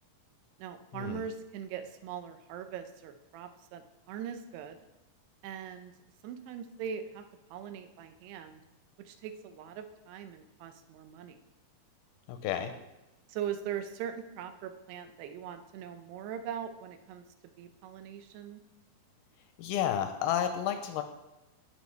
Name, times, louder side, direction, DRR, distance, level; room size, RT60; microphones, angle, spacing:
voice 1, 0.6-4.8 5.4-5.9 6.2-7.2 7.5-8.6 9.1-11.4 13.3-17.2 17.6-18.6, right 8 dB, 85° right, 9 dB, 2.8 m, -41 dB
voice 2, 12.3-12.7 19.6-21.0, left 10 dB, 85° left, 8 dB, 2.4 m, -31 dB
15.5 x 5.3 x 3.3 m, 0.99 s
omnidirectional pair, 4.6 m